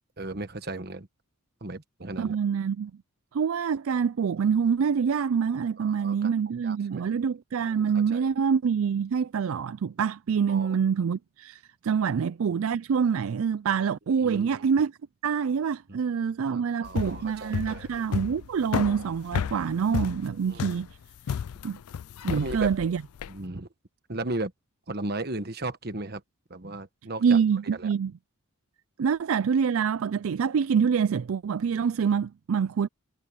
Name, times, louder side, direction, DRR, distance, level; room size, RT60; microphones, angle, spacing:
voice 1, 0.2-1.1 1.6-2.3 5.8-6.3 6.6-7.0 7.6-8.2 10.5-10.7 14.2-14.6 15.9-16.0 16.5-18.1 20.5-20.6 22.3-22.7 23.3-23.7 24.1-24.5 24.9-26.2 26.5-27.4 27.8-27.9, right 2 dB, 45° right, 1.3 m, -35 dB
voice 2, 2.2-2.9 3.3-14.9 15.2-20.9 21.6-21.8 22.2-23.0 27.2-28.1 29.0-32.9, right 6 dB, 70° right, 0.4 m, -26 dB
sound 1, 16.8-23.4, left 7 dB, 85° left, 0.4 m, -32 dB
head